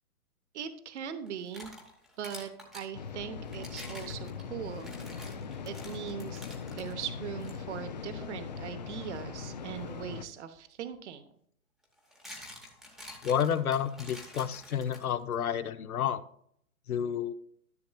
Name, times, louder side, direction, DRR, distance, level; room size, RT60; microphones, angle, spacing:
voice 1, 0.5-1.7 2.2-4.9 5.6-6.5 6.7-11.2, right 8 dB, 50° right, 10 dB, 1.0 m, -40 dB
sound 1, 1.3-2.9 3.5-6.9 7.4-7.5 8.2-8.4 10.5-10.6 11.8-15.3, left 1 dB, ahead, 0.9 m, -48 dB
sound 2, 2.9-10.3, left 5 dB, 30° left, 0.4 m, -40 dB
voice 2, 13.2-16.2 16.9-17.3, left 8 dB, 75° left, 10 dB, 0.9 m, -30 dB
13.5 x 6.8 x 2.3 m, 0.66 s
hypercardioid pair, 150°, 44 cm